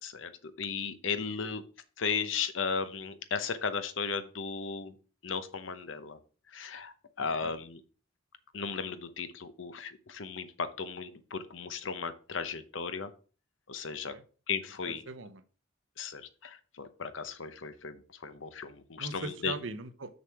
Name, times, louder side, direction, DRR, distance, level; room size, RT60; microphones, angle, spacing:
voice 1, 0.0-1.6 2.0-4.9 5.2-6.2 6.5-7.8 8.5-13.1 13.7-14.1 14.5-15.0 16.0-19.5, left 5 dB, 75° left, 11 dB, 0.8 m, -36 dB
voice 2, 7.2-7.5 14.1-14.2 15.1-15.4 19.0-20.1, right 3 dB, 75° right, 10 dB, 0.8 m, -40 dB
6.6 x 6.2 x 4.7 m, 0.38 s
head